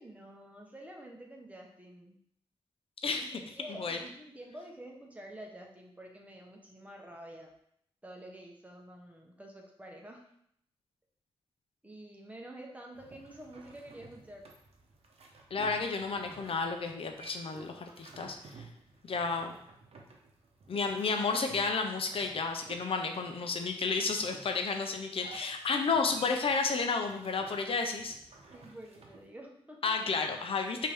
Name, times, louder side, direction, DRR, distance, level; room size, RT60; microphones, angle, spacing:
voice 1, 0.0-2.2 3.2-7.5 8.0-10.2 11.8-14.4 28.5-30.0, right 1 dB, 15° right, 0 dB, 0.9 m, -49 dB
sound 1, 12.9-29.3, right 3 dB, 75° right, 0.8 m, -54 dB
voice 2, 15.5-18.7 19.0-19.5 20.7-28.1 29.8-30.9, left 4 dB, 65° left, 4 dB, 0.6 m, -32 dB
5.2 x 2.8 x 3.5 m, 0.70 s
wide cardioid pair, 95°, 10 cm